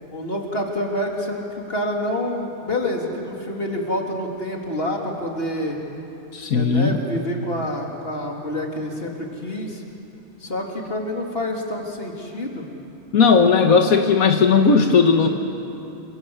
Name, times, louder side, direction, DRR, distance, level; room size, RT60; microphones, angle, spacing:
voice 1, 0.1-5.8 6.5-9.8 10.4-12.7, left 1 dB, 40° left, 0 dB, 3.5 m, -27 dB
voice 2, 6.3-7.0 13.1-15.3, left 5 dB, 85° left, 4 dB, 1.8 m, -16 dB
28.5 x 26.5 x 8.1 m, 2.9 s
omnidirectional pair, 1.5 m